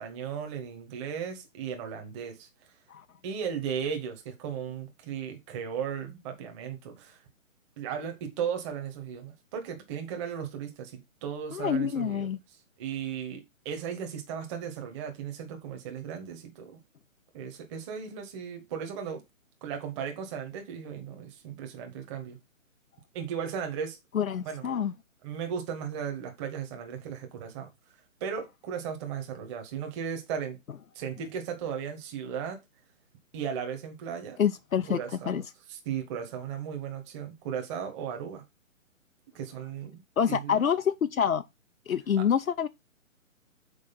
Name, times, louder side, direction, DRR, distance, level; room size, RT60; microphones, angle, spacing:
voice 1, 0.0-2.5 3.2-7.2 7.8-12.3 12.8-16.8 17.3-19.2 19.6-22.4 23.1-24.0 24.4-24.7 25.2-27.7 28.2-30.6 30.9-32.6 33.3-34.4 34.9-35.4 35.7-38.4 39.3-40.0 40.3-40.6 42.2-42.3, right 7 dB, 20° right, 1.5 m, -36 dB
voice 2, 11.5-12.4 24.1-24.9 34.4-35.0 35.3-35.4 40.2-41.4 41.9-42.7, left 8 dB, 80° left, 0.6 m, -27 dB
6.9 x 4.8 x 5.4 m
figure-of-eight pair, 135°, 40 cm